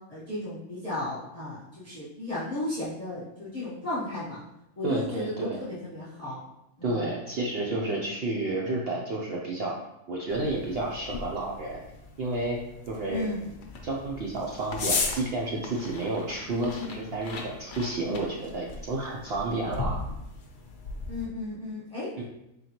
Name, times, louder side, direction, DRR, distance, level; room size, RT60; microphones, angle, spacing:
voice 1, 0.1-4.4 4.8-6.4 6.8-7.0 13.1-13.5 16.5-17.0 18.0-18.2 21.1-22.1, left 2 dB, 25° left, -10 dB, 1.0 m, -34 dB
voice 2, 4.8-5.6 6.8-9.8 10.1-11.8 12.2-12.6 12.9-13.3 13.8-20.0 22.2-22.3, right 2 dB, 75° right, -2 dB, 0.5 m, -31 dB
sound 1, 10.3-21.3, left 4 dB, 90° left, 0.4 m, -37 dB
3.8 x 3.4 x 2.9 m, 0.86 s
omnidirectional pair, 1.6 m